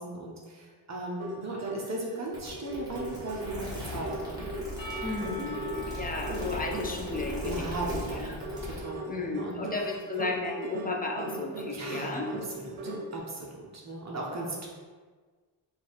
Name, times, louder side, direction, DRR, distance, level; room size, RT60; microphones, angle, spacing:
voice 1, 0.0-4.5 7.4-8.3 8.6-9.6 11.7-12.2 12.5-14.7, right 2 dB, 35° right, -2 dB, 0.7 m, -37 dB
sound 1, 1.2-2.2 2.5-13.2, right 1 dB, 75° right, 0.7 m, -38 dB
sound 2, 2.3-8.8, left 1 dB, 10° right, 1.2 m, -39 dB
Percussion / Church bell, 4.8-9.1, left 2 dB, 65° left, 0.8 m, -45 dB
voice 2, 5.0-7.7 7.9-8.3 9.1-12.3, left 3 dB, 20° left, 0 dB, 0.4 m, -34 dB
4.1 x 2.4 x 4.2 m, 1.5 s
wide cardioid pair, 150°, 49 cm